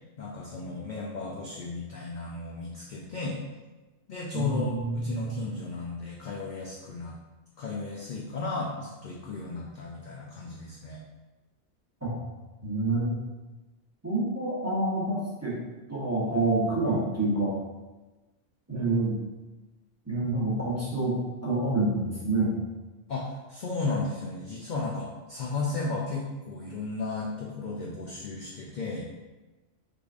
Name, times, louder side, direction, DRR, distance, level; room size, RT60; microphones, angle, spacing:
voice 1, 0.2-3.4 4.1-7.2 7.6-11.0 23.1-29.1, left 3 dB, 60° left, -3 dB, 0.5 m, -34 dB
voice 2, 4.3-5.4 12.0-12.1 12.6-13.1 14.0-15.6 15.9-17.5 18.7-19.2 20.1-22.5, right 2 dB, 15° right, -8 dB, 0.8 m, -27 dB
3.7 x 3.3 x 2.4 m, 1.2 s
omnidirectional pair, 1.2 m